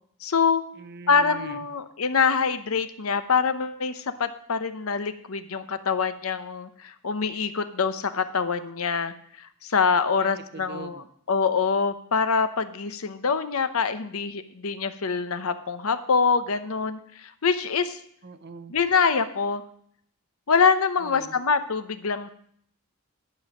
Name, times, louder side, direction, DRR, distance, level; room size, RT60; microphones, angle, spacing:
voice 1, 0.2-0.6 1.1-11.0 11.3-18.0 18.7-19.6 20.5-22.3, left 5 dB, 75° left, 11 dB, 0.8 m, -25 dB
voice 2, 0.7-1.7 10.2-11.1 18.2-18.7 21.0-21.4, right 4 dB, 50° right, 11 dB, 0.7 m, -42 dB
11.5 x 5.4 x 7.3 m, 0.65 s
head